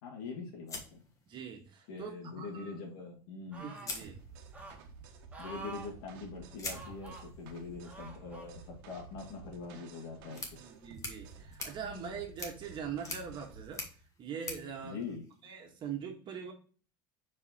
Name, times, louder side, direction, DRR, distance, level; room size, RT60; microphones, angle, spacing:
voice 1, 0.0-1.0 1.9-3.7 5.4-10.4 11.8-12.1 14.8-15.2, left 4 dB, 80° left, -2 dB, 2.3 m, -43 dB
sound 1, 0.7-1.8 3.1-3.2 3.7-4.8 6.6-15.8, left 3 dB, 25° left, 1.8 m, -46 dB
voice 2, 1.3-2.8 3.6-4.2 10.3-13.8 14.2-15.0 15.4-16.5, right 7 dB, 40° right, 2 dB, 1.9 m, -42 dB
sound 2, 3.5-4.0 4.5-4.8 5.3-5.9 6.7-7.2 7.8-8.5 9.2-9.3, right 3 dB, 10° right, 2.0 m, -47 dB
sound 3, 4.0-13.7, right 4 dB, 80° right, 1.3 m, -52 dB
4.9 x 4.8 x 4.5 m, 0.39 s
supercardioid pair, 125°, 12 cm